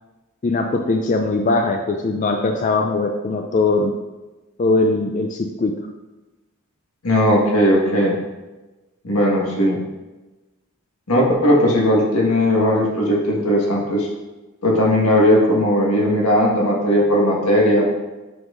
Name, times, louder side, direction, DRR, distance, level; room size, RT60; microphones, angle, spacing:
voice 1, 0.4-3.9 4.6-5.7, left 3 dB, 35° left, 4 dB, 0.3 m, -20 dB
voice 2, 7.0-8.1 9.0-9.8 11.1-14.1 14.6-17.9, equal, 80° left, -2 dB, 1.5 m, -17 dB
7.7 x 5.5 x 2.5 m, 1.1 s
head